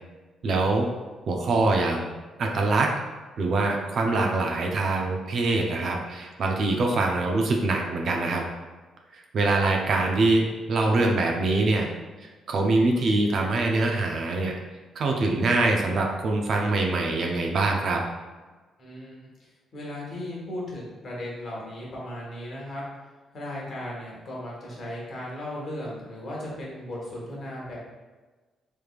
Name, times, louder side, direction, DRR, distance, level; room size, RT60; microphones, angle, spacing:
voice 1, 0.4-0.9 1.3-2.0 2.4-2.9 3.4-8.4 9.1-11.9 12.2-14.5 15.0-18.0, right 2 dB, 60° right, 1 dB, 0.5 m, -24 dB
voice 2, 18.8-22.8 23.3-27.8, left 1 dB, 50° left, -5 dB, 1.3 m, -36 dB
3.3 x 3.2 x 2.4 m, 1.3 s
cardioid pair, 90°, 0 cm